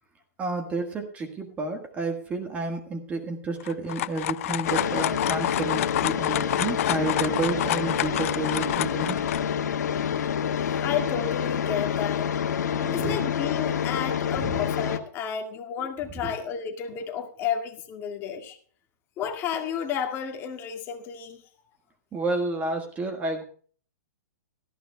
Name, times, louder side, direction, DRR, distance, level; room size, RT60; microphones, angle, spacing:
voice 1, 0.4-9.2 12.7-13.2 14.4-14.6 16.1-16.3 22.1-23.4, right 3 dB, 15° right, 5 dB, 1.5 m, -30 dB
sound 1, 3.6-9.4, left 14 dB, 50° left, 0.4 m, -29 dB
sound 2, 4.6-15.0, left 8 dB, 75° left, 1.7 m, -28 dB
voice 2, 10.8-12.4 12.9-18.6 19.2-21.4, left 8 dB, 25° left, 5 dB, 1.9 m, -32 dB
18.0 x 14.5 x 2.2 m, 0.44 s
hypercardioid pair, 155°, 9 cm